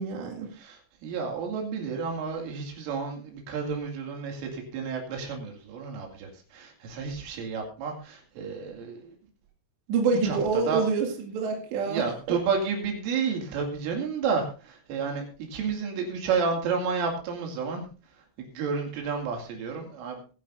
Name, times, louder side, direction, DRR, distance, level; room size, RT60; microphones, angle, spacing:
voice 1, 0.0-0.5 9.9-12.4, right 4 dB, 65° right, 1 dB, 4.3 m, -27 dB
voice 2, 0.5-9.2 10.1-10.8 11.8-15.2 15.5-17.9 18.4-20.2, right 5 dB, 80° right, 2 dB, 4.9 m, -31 dB
21.5 x 11.0 x 2.6 m, 0.35 s
omnidirectional pair, 5.7 m